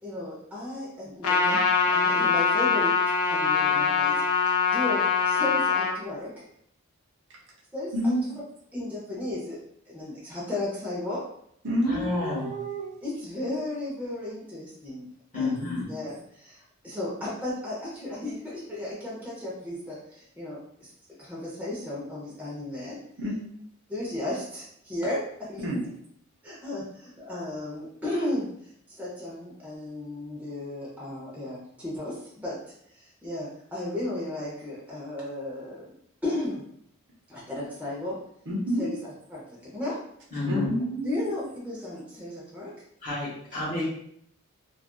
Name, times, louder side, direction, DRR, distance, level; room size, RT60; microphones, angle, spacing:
voice 1, 0.0-2.9 3.3-4.2 4.7-6.4 7.7-8.3 8.7-9.6 9.9-11.2 13.0-15.1 15.3-20.9 21.2-23.0 23.9-25.7 26.4-28.5 28.9-32.6 32.9-35.8 36.2-36.6 37.3-38.2 38.8-39.0 39.3-40.0 41.0-42.7, left 1 dB, 5° right, -7 dB, 0.6 m, -34 dB
Trumpet, 1.2-5.9, left 5 dB, 80° left, 0.4 m, -23 dB
voice 2, 7.9-8.3 11.6-12.9 15.6-15.8 23.2-23.5 25.6-25.8 38.5-38.9 40.4-41.3, equal, 55° right, -3 dB, 0.7 m, -29 dB
voice 3, 11.8-12.5 15.3-15.9 40.3-40.7 43.0-43.8, left 2 dB, 35° left, -7 dB, 1.1 m, -30 dB
2.5 x 2.4 x 2.2 m, 0.69 s
head